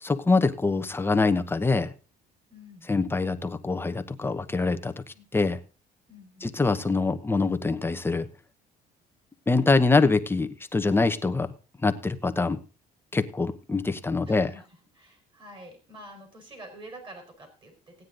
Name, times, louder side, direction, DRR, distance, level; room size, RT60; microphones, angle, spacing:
voice 1, 0.0-1.9 2.9-4.9 5.3-5.6 6.4-8.3 9.5-11.5 11.8-12.6 13.1-14.5, left 3 dB, 15° left, 9 dB, 1.0 m, -24 dB
voice 2, 2.5-2.9 5.1-5.6 6.1-6.6 14.2-14.7 14.9-17.9, right 1 dB, 30° right, 6 dB, 4.7 m, -47 dB
15.5 x 9.5 x 3.9 m, 0.34 s
cardioid pair, 110°, 17 cm